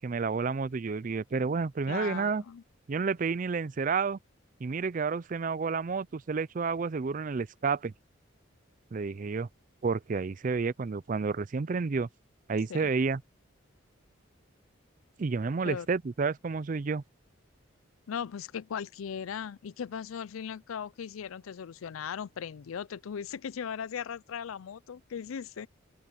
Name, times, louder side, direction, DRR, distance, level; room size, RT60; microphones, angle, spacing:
voice 1, 0.0-2.4 2.9-4.2 4.6-7.9 8.9-9.5 9.8-12.1 12.5-13.2 15.2-17.0, right 4 dB, 40° right, 0.4 m, -30 dB
voice 2, 1.9-2.6 12.7-12.9 15.6-15.9 18.1-25.7, left 7 dB, 85° left, 0.4 m, -38 dB
open air
head